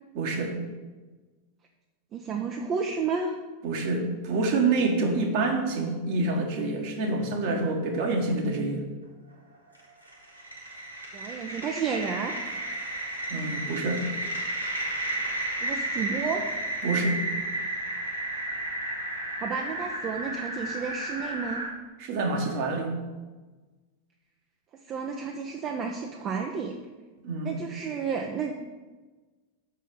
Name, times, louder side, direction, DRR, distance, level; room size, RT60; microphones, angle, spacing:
voice 1, 0.1-0.6 3.6-8.8 13.3-14.0 16.8-17.2 22.0-22.9 27.2-27.6, right 3 dB, 45° right, 2 dB, 1.5 m, -27 dB
voice 2, 2.1-3.3 11.1-12.3 15.6-16.4 19.4-21.6 24.9-26.7 27.4-28.5, right 5 dB, 30° right, 3 dB, 0.7 m, -31 dB
sound 1, 9.7-21.7, right 1 dB, 90° right, 1.8 m, -33 dB
6.4 x 5.6 x 7.0 m, 1.3 s
figure-of-eight pair, 90°, 0 cm